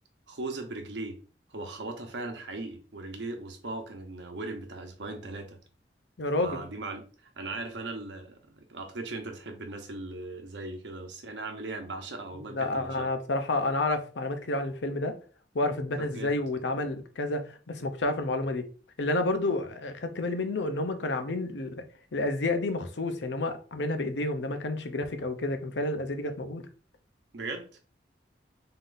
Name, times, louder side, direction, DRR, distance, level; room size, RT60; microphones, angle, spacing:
voice 1, 0.3-1.2 1.5-5.6 6.4-13.1 16.0-16.4 27.3-27.7, right 2 dB, 90° right, 0.9 m, -38 dB
voice 2, 6.2-6.6 12.5-15.2 15.5-18.7 19.0-21.8 22.1-26.6, left 2 dB, 90° left, 0.7 m, -30 dB
3.8 x 3.8 x 2.5 m
head